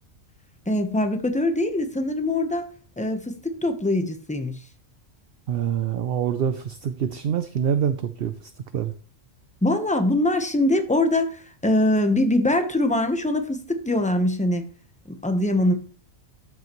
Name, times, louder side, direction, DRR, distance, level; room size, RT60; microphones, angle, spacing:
voice 1, 0.7-2.7 3.0-4.6 9.6-14.7 15.1-15.7, left 1 dB, 5° left, 7 dB, 0.8 m, -23 dB
voice 2, 5.5-8.9, right 8 dB, 60° right, 10 dB, 0.7 m, -26 dB
13.0 x 5.7 x 3.1 m, 0.42 s
omnidirectional pair, 1.3 m